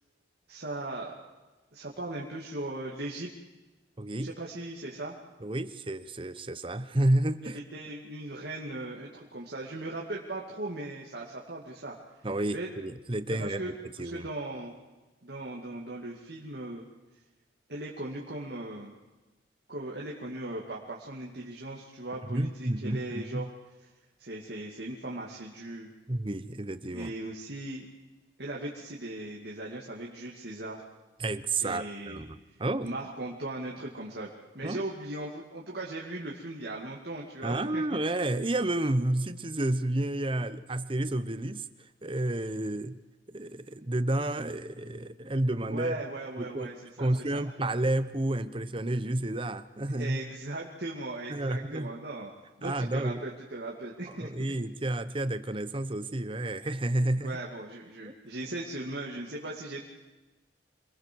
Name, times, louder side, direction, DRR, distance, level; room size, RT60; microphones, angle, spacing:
voice 1, 0.5-1.2 1.7-3.3 4.2-5.1 7.5-11.9 12.5-12.7 13.4-13.7 14.0-14.7 15.2-16.8 17.7-18.9 19.7-23.5 24.2-25.9 26.9-27.9 28.4-30.8 31.6-32.3 32.8-34.3 34.5-37.8 45.7-47.4 50.0-52.3 52.6-54.5 57.2-59.9, right 2 dB, 60° right, -2 dB, 2.5 m, -38 dB
voice 2, 4.0-4.3 5.4-7.6 12.2-14.3 22.3-23.5 26.1-27.1 31.2-32.9 34.6-34.8 37.4-43.0 43.3-46.0 46.4-46.7 47.0-50.2 51.3-51.9 52.6-53.2 54.1-57.4 58.0-58.1, right 1 dB, 30° right, 12 dB, 0.9 m, -30 dB
27.0 x 20.5 x 4.7 m, 1.2 s
head